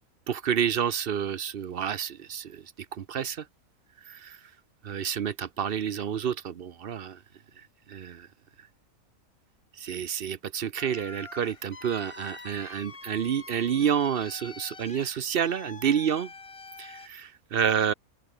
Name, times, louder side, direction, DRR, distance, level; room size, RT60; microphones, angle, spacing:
voice 1, 0.3-2.6 2.9-3.4 4.1-4.4 4.8-7.2 7.9-8.3 9.8-16.3 16.8-17.9, right 8 dB, 50° right, 0.7 m, -29 dB
sound 1, 10.8-17.1, left 4 dB, 25° left, 1.1 m, -46 dB
open air
omnidirectional pair, 1.6 m